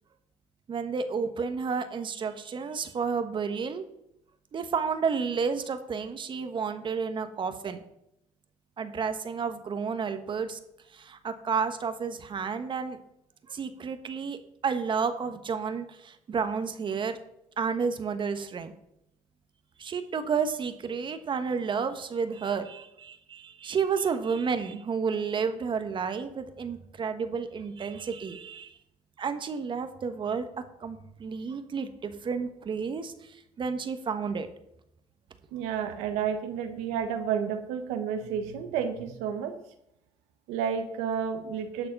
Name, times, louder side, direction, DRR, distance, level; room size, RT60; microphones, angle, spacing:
voice 1, 0.7-3.8 4.5-7.8 8.8-10.6 10.9-13.0 13.5-17.2 17.6-18.7 19.8-28.7 29.2-30.5 30.8-34.5, right 5 dB, 45° right, 9 dB, 1.3 m, -31 dB
voice 2, 35.5-39.5 40.5-41.9, right 7 dB, 90° right, 6 dB, 1.5 m, -31 dB
12.0 x 6.7 x 5.4 m, 0.79 s
supercardioid pair, 75°, 11 cm